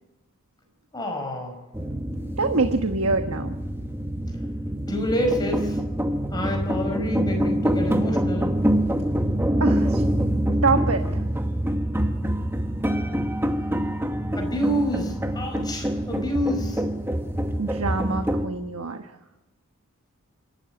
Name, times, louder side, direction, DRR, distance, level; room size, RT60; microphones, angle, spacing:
voice 1, 0.9-1.6 4.9-5.8 6.3-8.5 14.3-16.8, equal, 20° left, 3 dB, 4.9 m, -28 dB
sound 1, 1.7-18.5, right 1 dB, 10° right, 1.2 m, -25 dB
voice 2, 2.4-3.5 9.6-10.0 10.5-11.2 17.6-19.2, right 3 dB, 80° right, 7 dB, 1.2 m, -25 dB
26.0 x 13.0 x 8.9 m, 1.0 s
head